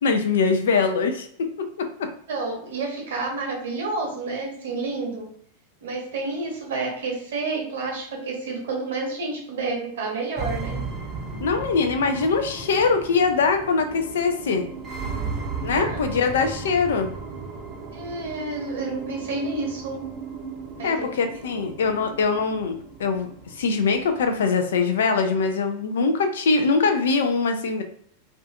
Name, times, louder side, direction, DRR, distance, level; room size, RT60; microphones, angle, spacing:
voice 1, 0.0-2.1 11.4-14.7 15.6-17.1 20.8-27.8, left 4 dB, 60° left, 7 dB, 0.4 m, -23 dB
voice 2, 2.3-5.3 5.8-10.8 15.7-16.0 17.9-20.0 20.8-21.1 21.6-21.7, right 3 dB, 60° right, 0 dB, 0.8 m, -30 dB
sound 1, 10.4-24.4, right 4 dB, 25° right, 0.6 m, -35 dB
2.4 x 2.4 x 2.3 m, 0.64 s
figure-of-eight pair, 90°, 0 cm